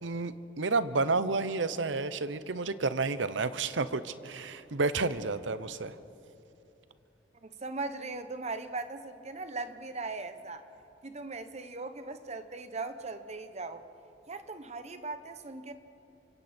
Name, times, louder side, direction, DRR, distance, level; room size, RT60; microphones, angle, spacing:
voice 1, 0.0-5.9, right 3 dB, 80° right, 13 dB, 0.8 m, -30 dB
voice 2, 7.4-10.6 11.0-13.9 14.3-15.7, right 3 dB, 35° right, 10 dB, 1.1 m, -39 dB
29.0 x 25.0 x 4.4 m, 2.9 s
head